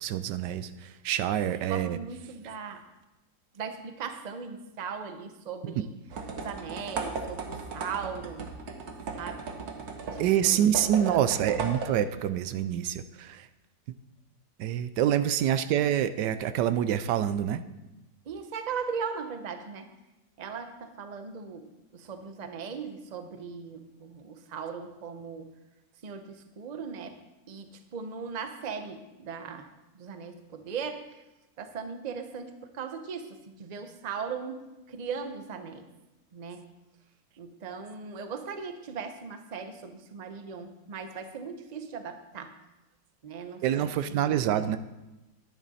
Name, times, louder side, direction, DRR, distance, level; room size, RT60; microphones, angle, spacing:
voice 1, 0.0-2.0 5.6-5.8 10.2-13.5 14.6-17.6 43.6-44.8, right 10 dB, 80° right, 12 dB, 1.2 m, -26 dB
voice 2, 1.6-2.8 3.5-5.9 6.3-8.5 9.1-9.4 10.1-10.7 11.1-11.3 18.3-19.9 20.4-25.5 26.0-27.2 27.5-29.7 29.9-31.0 31.6-35.9 36.3-36.6 37.4-42.5 43.2-44.5, right 6 dB, 50° right, 8 dB, 0.5 m, -38 dB
sound 1, 6.1-12.3, right 4 dB, 65° right, 1.5 m, -37 dB
10.5 x 10.0 x 4.2 m, 1.0 s
omnidirectional pair, 1.9 m